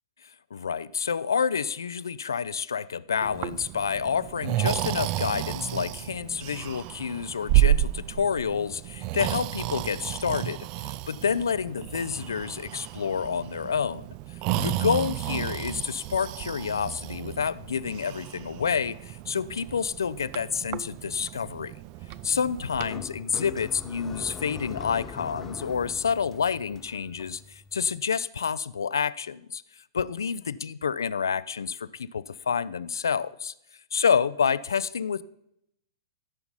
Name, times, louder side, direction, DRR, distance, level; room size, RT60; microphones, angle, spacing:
voice 1, 0.2-14.1 14.6-21.7 22.2-29.6 29.9-33.5 33.9-35.2, left 6 dB, 70° left, 0.4 m, -28 dB
Breathing, 3.2-22.9, right 15 dB, 40° right, 0.4 m, -31 dB
sound 1, 22.1-28.0, left 4 dB, 15° left, 0.9 m, -42 dB
13.5 x 5.8 x 5.4 m
figure-of-eight pair, 105°, 2 cm